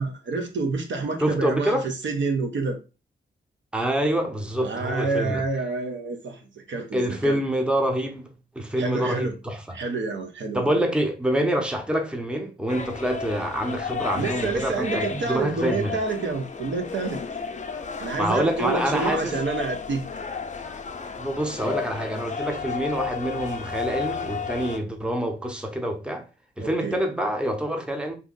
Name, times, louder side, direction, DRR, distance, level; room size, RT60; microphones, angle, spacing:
voice 1, 0.0-2.8 4.6-7.4 8.8-9.4 9.7-10.8 14.1-17.2 18.0-20.1 26.6-27.0, right 3 dB, 70° right, 0.7 m, -28 dB
voice 2, 1.2-1.9 3.7-5.4 6.9-9.8 10.5-15.9 18.2-19.3 21.2-26.3 26.6-28.1, right 1 dB, 5° right, 0.6 m, -26 dB
sound 1, 12.7-24.8, left 5 dB, 40° left, 0.5 m, -33 dB
2.8 x 2.5 x 3.8 m
cardioid pair, 75°, 20 cm